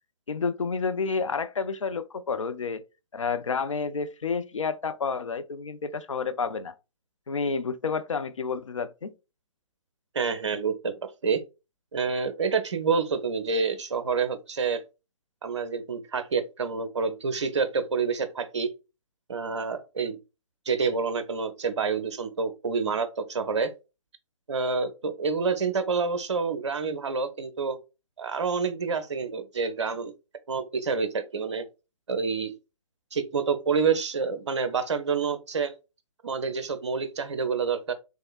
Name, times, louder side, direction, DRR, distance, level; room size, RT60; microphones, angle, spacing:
voice 1, 0.3-2.8 3.1-6.7 7.3-9.1, left 5 dB, 70° left, 0.5 m, -30 dB
voice 2, 10.1-11.4 11.9-14.8 15.4-18.7 19.3-20.2 20.7-23.7 24.5-27.8 28.2-30.1 30.5-31.6 32.1-32.5 33.1-35.7 36.2-37.9, right 5 dB, 60° right, 0.6 m, -28 dB
3.6 x 3.4 x 2.3 m
figure-of-eight pair, 130°, 17 cm